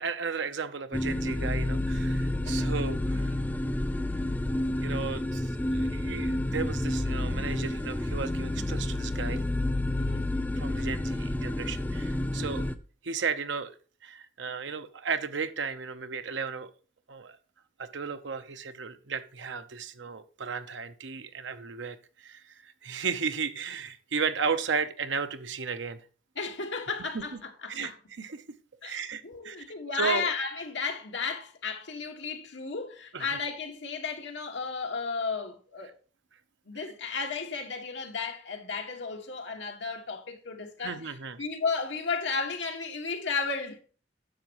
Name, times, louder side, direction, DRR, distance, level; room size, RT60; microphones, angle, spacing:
voice 1, 0.0-3.4 4.8-9.4 10.6-12.7 13.0-13.7 14.0-16.7 17.1-17.4 17.8-26.0 27.1-27.2 27.7-27.9 28.2-28.4 28.8-29.6 29.9-30.3 33.1-33.4 36.8-36.9 40.8-41.4, right 5 dB, 80° right, 0.8 m, -34 dB
sound 1, 0.9-12.8, left 1 dB, 10° left, 0.4 m, -29 dB
voice 2, 10.0-10.3 12.4-12.6 26.3-27.9 28.8-29.0 29.2-35.9 36.6-43.8, left 4 dB, 75° left, 1.6 m, -34 dB
10.0 x 7.3 x 3.0 m
head